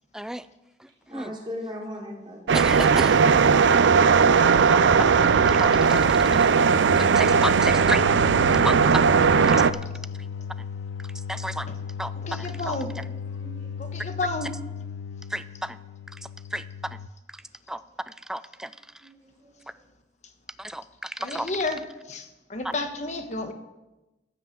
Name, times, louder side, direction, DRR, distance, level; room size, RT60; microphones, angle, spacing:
voice 1, 0.1-0.5 0.8-1.3 2.5-3.4 4.7-4.8 5.4-6.5 7.0-8.0 8.6-8.8 11.3-11.7 12.0-12.8 14.0-14.1 15.3-15.8 16.5-16.6 17.7-18.7 20.6-21.5, right 1 dB, 5° right, 13 dB, 0.4 m, -32 dB
voice 2, 1.1-2.4 10.4-10.5 13.4-13.9 19.0-19.1 19.4-19.5, left 1 dB, 30° right, -3 dB, 3.5 m, -38 dB
sound 1, 2.5-9.7, right 5 dB, 90° right, 0.4 m, -18 dB
sound 2, 5.3-17.1, left 6 dB, 85° left, 0.4 m, -36 dB
voice 3, 9.4-9.7 11.7-11.8 12.1-12.9 13.8-14.5 21.2-23.5, left 2 dB, 40° left, 7 dB, 1.2 m, -32 dB
14.5 x 6.0 x 7.8 m, 1.0 s
head